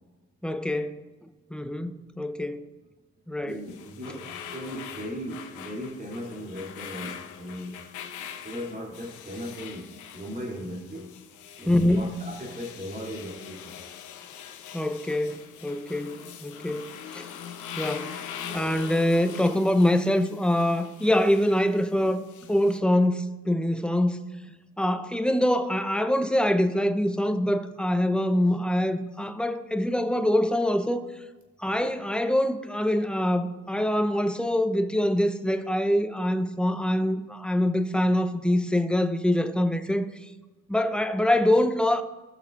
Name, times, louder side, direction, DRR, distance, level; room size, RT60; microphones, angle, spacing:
voice 1, 0.4-1.0 1.5-2.6 3.3-3.6 11.7-12.1 14.7-16.9 17.1-17.3 17.8-22.2 22.5-24.2 24.8-31.0 31.6-40.1 40.7-42.0, left 1 dB, 5° left, 0.6 m, -24 dB
voice 2, 3.4-7.8 8.4-11.1 11.6-13.8, equal, 30° right, 2.9 m, -37 dB
sound 1, 3.5-22.8, left 8 dB, 85° left, 0.9 m, -42 dB
17.0 x 6.4 x 2.5 m
cardioid pair, 90°, 30 cm